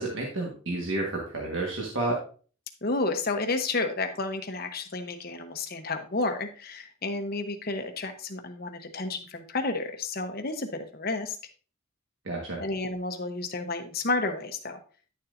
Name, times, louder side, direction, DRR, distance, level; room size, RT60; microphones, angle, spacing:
voice 1, 0.0-2.2 12.2-12.6, right 2 dB, 60° right, -1 dB, 1.5 m, -30 dB
voice 2, 2.8-11.4 12.6-14.8, left 3 dB, 45° left, 6 dB, 1.0 m, -31 dB
10.5 x 7.0 x 2.6 m, 0.39 s
head